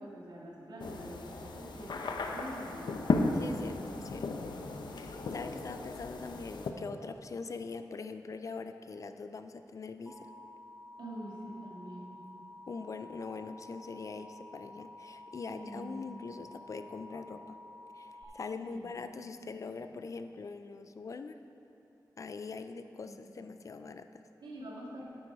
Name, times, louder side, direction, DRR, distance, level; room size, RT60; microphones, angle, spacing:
voice 1, 0.0-3.0 11.0-12.2 15.5-16.3 18.2-18.3 18.6-18.9 19.4-19.9 23.0-23.4 24.4-25.0, right 1 dB, 90° right, -4 dB, 1.9 m, -46 dB
sound 1, 0.8-6.7, left 3 dB, 90° left, 0.7 m, -35 dB
voice 2, 3.3-4.3 4.9-10.2 12.7-17.6 17.9-21.4 22.2-24.2, left 4 dB, 45° left, 9 dB, 0.4 m, -43 dB
Alarm, 10.1-18.2, left 2 dB, 5° right, 0.7 m, -51 dB
8.9 x 8.7 x 4.7 m, 2.8 s
wide cardioid pair, 165°, 7 cm